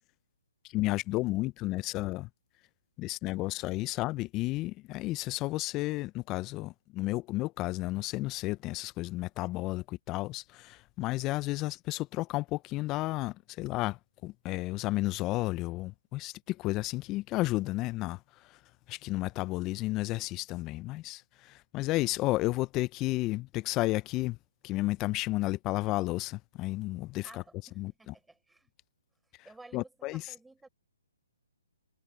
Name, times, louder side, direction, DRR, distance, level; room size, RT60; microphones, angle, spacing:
voice 1, 0.7-2.3 3.0-18.2 18.5-18.6 18.9-24.4 24.6-27.4 27.8-28.1 29.7-30.2, left 19 dB, 25° left, 0.7 m, -32 dB
voice 2, 27.2-28.7 29.4-30.7, right 2 dB, 5° right, 4.8 m, -55 dB
hypercardioid pair, 140°, 0 cm